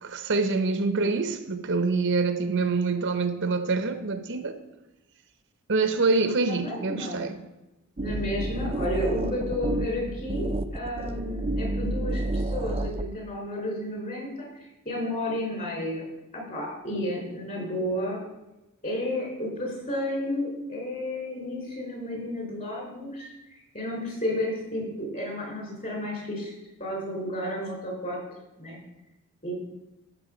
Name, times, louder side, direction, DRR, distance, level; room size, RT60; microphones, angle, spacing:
voice 1, 0.0-4.6 5.7-7.4, right 3 dB, 60° right, 0.8 m, -25 dB
voice 2, 6.5-7.3 8.0-16.0 16.3-18.2 18.8-26.5 26.8-28.2 28.6-28.8 29.4-29.5, left 1 dB, 40° left, 4.2 m, -32 dB
sound 1, 8.0-13.1, right 1 dB, 25° right, 0.5 m, -30 dB
14.0 x 6.3 x 5.1 m
head